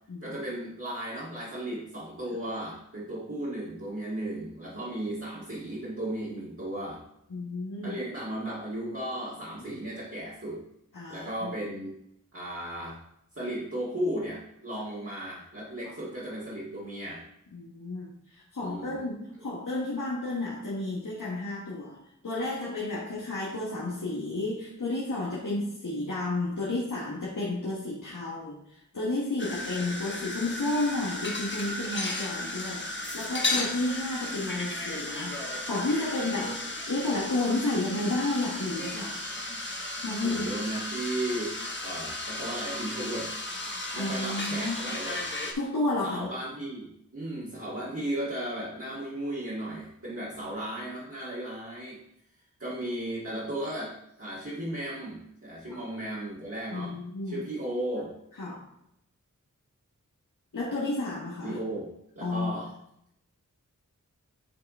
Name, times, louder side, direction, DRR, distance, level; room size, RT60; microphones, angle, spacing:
voice 1, 0.2-7.0 7.8-10.6 11.1-11.9 12.3-13.0 13.4-17.2 18.6-19.0 40.2-43.3 43.9-45.2 46.0-52.0 52.6-57.0 57.3-58.1 61.4-61.9 62.2-62.7, right 1 dB, 45° right, -9 dB, 2.0 m, -35 dB
voice 2, 7.3-8.0 9.7-9.8 10.9-11.5 17.5-22.0 22.2-32.8 33.1-35.4 35.6-39.2 40.0-40.6 44.0-44.9 45.5-46.3 55.7-55.8 56.7-57.4 58.4-58.6 60.5-61.6 62.2-62.6, left 2 dB, 80° left, -7 dB, 1.4 m, -31 dB
sound 1, 29.4-45.5, left 2 dB, 35° left, 1.1 m, -35 dB
8.6 x 3.4 x 4.2 m, 0.77 s
wide cardioid pair, 60°, 31 cm